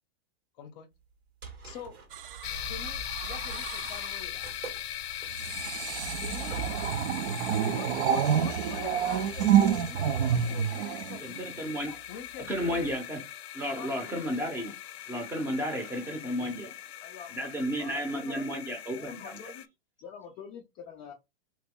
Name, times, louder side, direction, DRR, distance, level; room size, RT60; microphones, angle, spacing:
voice 1, 0.6-0.9 1.6-2.0 2.7-4.5 6.2-6.6 7.7-11.2 12.1-12.9 13.7-14.2, left 8 dB, 40° left, 0.7 m, -45 dB
sound 1, 1.0-6.9, right 6 dB, 80° right, 1.8 m, -48 dB
sound 2, 2.1-4.2 5.3-11.7 12.6-12.9, right 9 dB, 60° right, 0.6 m, -29 dB
sound 3, 2.4-19.7, left 12 dB, 90° left, 0.5 m, -40 dB
voice 2, 11.2-12.0 12.5-13.2 13.5-16.8 17.3-19.4, equal, 5° right, 0.7 m, -33 dB
voice 3, 17.0-17.5 17.8-19.7 20.0-21.1, left 6 dB, 20° left, 0.3 m, -46 dB
3.0 x 2.8 x 3.7 m
hypercardioid pair, 145°, 30 cm